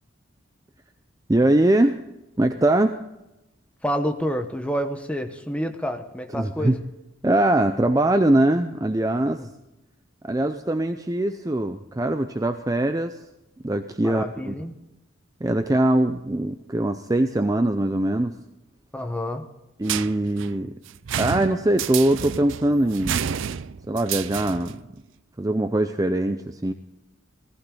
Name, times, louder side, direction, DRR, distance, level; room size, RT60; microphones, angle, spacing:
voice 1, 1.3-2.0 2.4-3.0 6.3-6.8 7.2-9.4 10.2-13.2 13.6-14.5 15.4-18.4 19.8-20.8 21.2-23.2 23.9-24.8 25.4-26.7, right 1 dB, 15° right, 8 dB, 0.5 m, -22 dB
voice 2, 3.8-6.7 9.4-9.5 14.0-14.8 18.9-19.5, equal, 5° left, 5 dB, 1.1 m, -28 dB
sound 1, 19.8-24.8, right 8 dB, 75° right, 0.5 m, -30 dB
17.5 x 15.0 x 3.9 m, 0.94 s
head